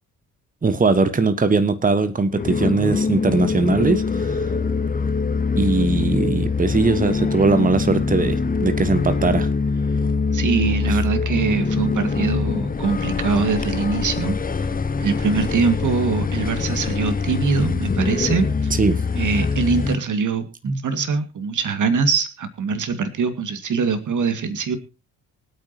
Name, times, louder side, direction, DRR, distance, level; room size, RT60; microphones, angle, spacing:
voice 1, 0.6-4.4 5.6-9.5 10.9-11.0 18.8-19.0 20.7-20.8, right 3 dB, 20° right, 12 dB, 1.4 m, -20 dB
sound 1, 2.3-20.0, left 4 dB, 20° left, 1.0 m, -23 dB
voice 2, 10.3-14.4 15.0-18.7 19.1-24.8, right 5 dB, 40° right, 10 dB, 2.2 m, -23 dB
24.5 x 8.8 x 3.0 m, 0.32 s
figure-of-eight pair, 45°, 45 cm